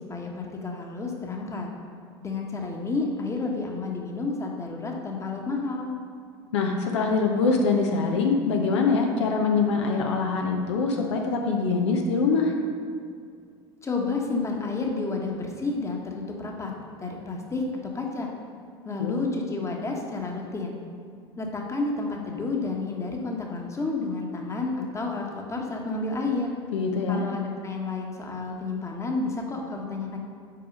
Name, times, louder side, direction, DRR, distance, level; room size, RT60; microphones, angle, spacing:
voice 1, 0.1-1.7 2.2-5.9 13.8-16.7 17.0-17.7 17.9-18.3 18.8-20.8 21.4-26.5 27.1-30.2, left 3 dB, 20° left, 1 dB, 1.1 m, -30 dB
voice 2, 6.5-12.5 19.0-19.2 26.7-27.2, left 4 dB, 75° left, 1 dB, 0.7 m, -24 dB
5.7 x 4.7 x 5.3 m, 2.2 s
hypercardioid pair, 70°, 15 cm